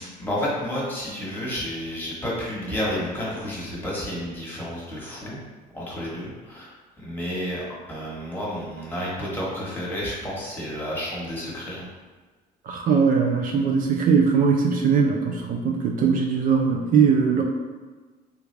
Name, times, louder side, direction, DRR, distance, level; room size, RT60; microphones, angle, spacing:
voice 1, 0.0-5.4 5.7-6.7 7.0-7.6 7.9-11.9, equal, 10° left, -6 dB, 1.2 m, -31 dB
voice 2, 12.7-17.4, right 6 dB, 55° right, 1 dB, 0.4 m, -20 dB
3.4 x 2.3 x 3.2 m, 1.3 s
cardioid pair, 110°, 17 cm